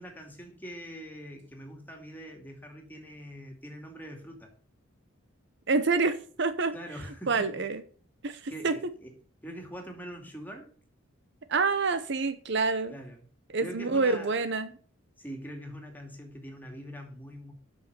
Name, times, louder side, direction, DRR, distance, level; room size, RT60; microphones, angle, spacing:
voice 1, 0.0-4.5 6.7-7.7 8.5-9.1 9.4-10.7 12.9-13.2 13.6-14.3 15.2-17.5, equal, 10° left, 2.5 m, -43 dB
voice 2, 5.7-6.7 7.3-7.8 8.2-8.7 11.5-12.9 13.5-14.7, right 4 dB, 60° right, 0.8 m, -27 dB
8.4 x 6.4 x 6.7 m
head